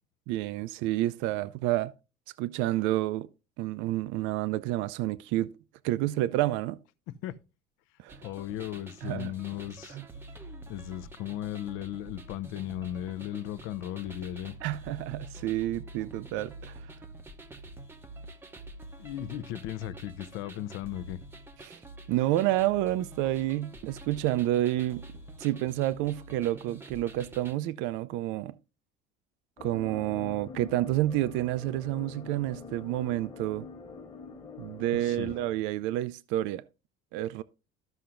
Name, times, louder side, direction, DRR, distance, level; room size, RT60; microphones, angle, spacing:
voice 1, 0.3-1.9 2.4-3.3 3.6-5.6 5.8-6.8 8.0-8.2 9.0-9.3 9.9-10.0 14.6-16.9 21.6-21.8 22.1-25.1 25.4-28.5 29.6-33.7 34.6-36.6 37.1-37.4, right 15 dB, 65° right, 0.5 m, -29 dB
sound 1, 8.1-27.5, right 2 dB, 10° right, 0.6 m, -47 dB
voice 2, 8.2-10.0 10.7-14.6 19.0-21.2 35.0-35.3, left 13 dB, 75° left, 0.7 m, -36 dB
sound 2, 29.6-35.5, left 4 dB, 25° left, 1.4 m, -45 dB
14.0 x 5.7 x 2.5 m
cardioid pair, 170°, 21 cm